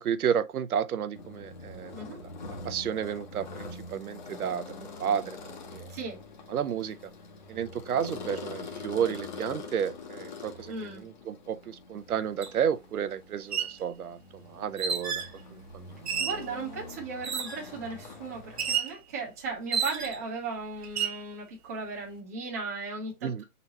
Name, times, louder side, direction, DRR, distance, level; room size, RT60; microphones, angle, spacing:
voice 1, 0.0-2.3 2.6-5.9 6.5-7.1 7.5-15.2 15.5-16.1 23.2-23.4, right 8 dB, 75° right, 0.6 m, -32 dB
sound 1, 1.1-18.8, left 3 dB, 30° left, 0.7 m, -44 dB
voice 2, 5.9-6.2 10.7-11.0 16.2-23.4, right 4 dB, 10° right, 0.6 m, -36 dB
sound 2, 12.4-12.5 13.4-13.8 14.8-15.3 16.1-16.5 17.2-17.7 18.6-18.9 19.7-20.3 20.8-21.2, right 7 dB, 45° right, 1.0 m, -31 dB
4.4 x 3.9 x 2.8 m
hypercardioid pair, 155°, 45 cm